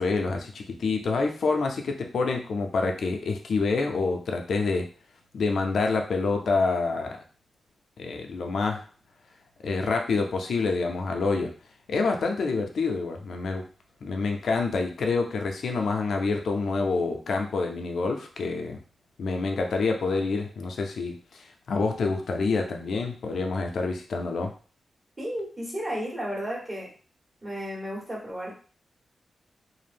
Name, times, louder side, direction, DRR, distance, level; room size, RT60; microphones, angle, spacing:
voice 1, 0.0-4.9 5.3-7.2 8.0-8.9 9.6-11.5 11.9-13.6 14.0-18.8 19.2-24.5, left 4 dB, 75° left, 3 dB, 0.4 m, -27 dB
voice 2, 25.2-26.9 27.4-28.5, equal, 25° right, -5 dB, 1.3 m, -33 dB
2.5 x 2.0 x 3.3 m, 0.39 s
wide cardioid pair, 115°, 0 cm